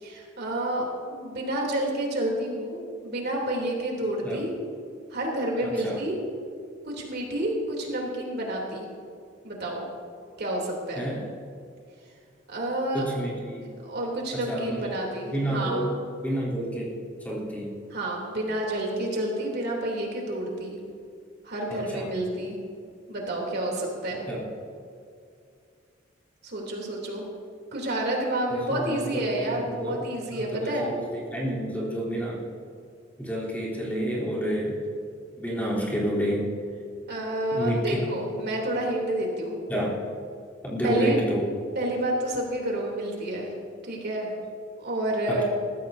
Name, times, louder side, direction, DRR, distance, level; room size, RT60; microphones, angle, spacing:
voice 1, 0.0-0.8 1.1-4.5 5.1-6.2 6.9-8.9 9.4-9.8 10.4-11.1 12.5-13.0 13.8-15.9 17.9-20.8 21.4-22.6 23.1-24.3 26.4-27.2 27.7-30.9 37.1-39.6 40.8-41.2 41.7-43.5 43.8-44.3 44.8-45.4, right 1 dB, 55° right, -1 dB, 3.1 m, -29 dB
voice 2, 5.6-6.0 11.0-11.2 12.9-13.7 14.3-14.9 15.3-17.7 21.7-22.1 24.3-24.5 28.7-32.4 33.2-34.8 35.4-36.5 37.5-38.0 39.7-40.0 40.6-41.5 45.3-45.4, right 1 dB, 10° left, -6 dB, 3.4 m, -29 dB
20.0 x 14.5 x 2.7 m, 2.4 s
head